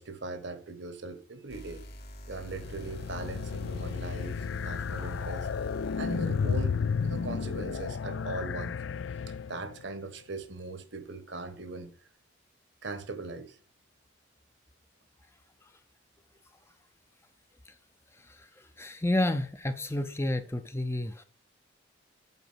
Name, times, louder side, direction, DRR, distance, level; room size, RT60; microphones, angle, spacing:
voice 1, 0.0-1.8 2.3-5.5 6.0-8.8 9.5-11.9 12.8-13.6, right 3 dB, 65° right, 1.2 m, -40 dB
sound 1, 1.5-7.9, equal, 55° left, 1.8 m, -46 dB
sound 2, 2.4-9.8, left 6 dB, 70° left, 0.4 m, -33 dB
voice 2, 18.8-21.2, left 1 dB, 15° left, 0.6 m, -30 dB
8.1 x 4.9 x 7.2 m
head